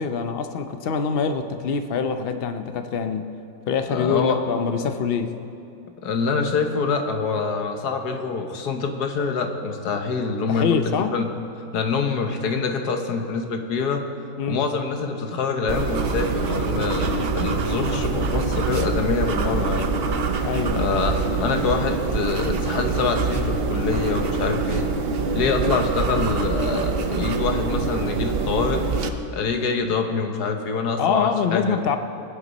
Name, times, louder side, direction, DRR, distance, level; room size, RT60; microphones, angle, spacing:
voice 1, 0.0-3.3 3.7-5.3 10.5-11.1 14.4-14.7 20.4-20.9 31.0-32.0, left 6 dB, 50° left, 8 dB, 0.7 m, -24 dB
voice 2, 3.9-4.4 6.0-11.3 11.7-14.0 14.5-19.9 20.7-24.9 25.3-28.8 29.3-31.8, left 5 dB, 85° left, 5 dB, 1.6 m, -25 dB
sound 1, 15.7-29.1, right 4 dB, 50° right, 0.8 m, -25 dB
21.5 x 9.5 x 4.1 m, 2.7 s
omnidirectional pair, 1.6 m